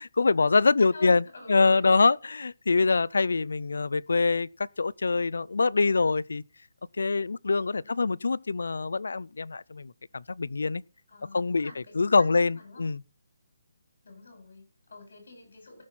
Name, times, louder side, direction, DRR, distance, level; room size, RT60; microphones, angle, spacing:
voice 1, 0.0-6.4 7.0-10.8 11.3-13.0, left 4 dB, 80° left, 0.4 m, -25 dB
voice 2, 0.6-1.9 7.7-8.3 11.1-12.9 14.0-15.8, left 3 dB, 55° left, 7.4 m, -48 dB
18.0 x 5.9 x 4.2 m
hypercardioid pair, 180°, 0 cm